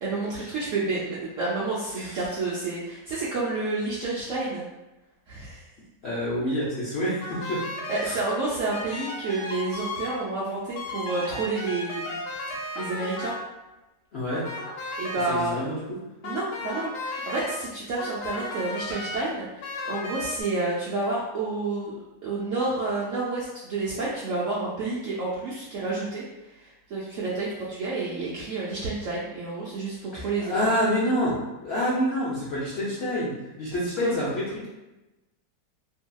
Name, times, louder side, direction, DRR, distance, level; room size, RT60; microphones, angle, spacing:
voice 1, 0.0-4.6 5.3-5.6 7.9-12.2 12.5-13.3 15.0-15.6 16.2-26.2 26.6-30.7 34.0-34.1, right 3 dB, 70° right, -7 dB, 0.7 m, -30 dB
voice 2, 6.0-7.6 8.0-8.2 14.1-14.4 15.3-16.0 30.1-31.4 31.6-34.7, equal, 65° left, -9 dB, 0.6 m, -27 dB
sound 1, 7.2-8.1 8.7-10.2 10.8-13.5 14.3-15.3 16.2-17.5 18.0-19.2 19.6-20.4, left 2 dB, 85° left, 1.2 m, -34 dB
2.7 x 2.7 x 2.2 m, 1.0 s
omnidirectional pair, 1.8 m